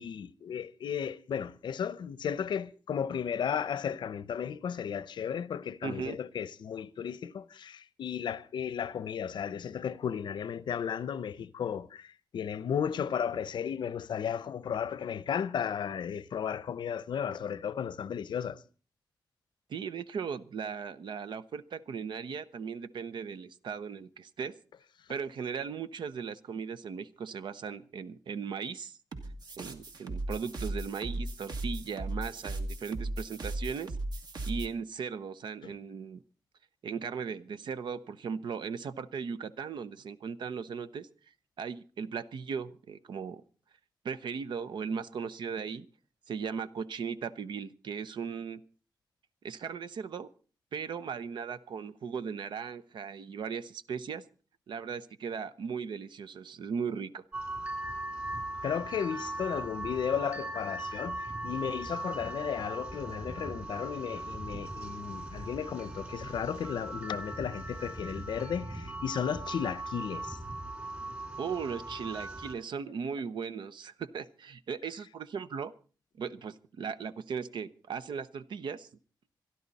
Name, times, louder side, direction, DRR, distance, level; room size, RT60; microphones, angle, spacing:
voice 1, 0.0-18.6 35.6-35.7 58.6-70.4, left 8 dB, 85° left, 0.7 m, -34 dB
voice 2, 5.8-6.2 19.7-24.5 25.1-29.0 29.6-34.0 34.5-36.2 36.8-41.1 41.6-43.4 44.0-45.9 46.3-48.6 49.4-50.3 50.7-54.2 54.7-57.2 71.4-75.7 76.2-78.9, right 6 dB, 90° right, 0.8 m, -37 dB
sound 1, 29.1-34.7, right 1 dB, 65° right, 2.0 m, -36 dB
sound 2, 57.3-72.5, right 2 dB, 20° right, 2.1 m, -39 dB
26.0 x 11.0 x 4.1 m
wide cardioid pair, 175°, 8 cm